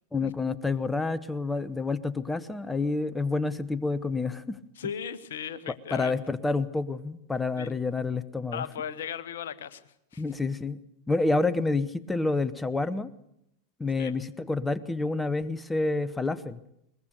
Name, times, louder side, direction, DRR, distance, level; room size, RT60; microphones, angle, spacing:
voice 1, 0.1-4.6 5.9-8.7 10.2-10.8 11.1-13.1 13.8-16.6, left 3 dB, 10° left, 17 dB, 0.8 m, -28 dB
voice 2, 4.8-6.1 7.6-7.7 8.5-10.2 14.0-14.2, left 8 dB, 60° left, 15 dB, 1.1 m, -37 dB
22.0 x 20.5 x 6.7 m, 0.78 s
figure-of-eight pair, 90°, 0 cm